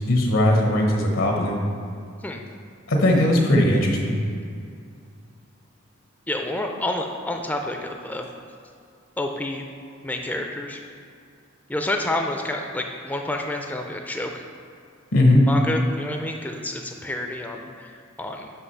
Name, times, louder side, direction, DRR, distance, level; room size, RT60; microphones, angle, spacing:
voice 1, 0.1-1.6 2.9-4.2 15.1-15.4, left 1 dB, 80° left, 1 dB, 0.9 m, -19 dB
voice 2, 6.3-8.3 9.2-9.7 10.0-10.8 11.7-14.4 15.5-18.5, left 1 dB, 10° left, 3 dB, 0.4 m, -29 dB
5.7 x 5.6 x 5.5 m, 2.3 s
head